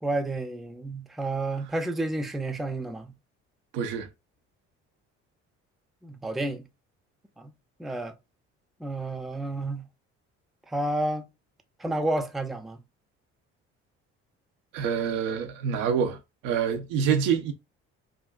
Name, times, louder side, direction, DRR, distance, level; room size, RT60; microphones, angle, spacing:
voice 1, 0.0-3.1 6.0-6.7 7.4-7.5 7.8-8.1 8.8-9.8 10.7-11.3 11.8-12.8, right 2 dB, ahead, 0.5 m, -30 dB
voice 2, 3.7-4.1 14.7-16.2 16.4-17.5, right 7 dB, 75° right, 0.8 m, -26 dB
3.6 x 2.4 x 2.3 m
hypercardioid pair, 60°, 33 cm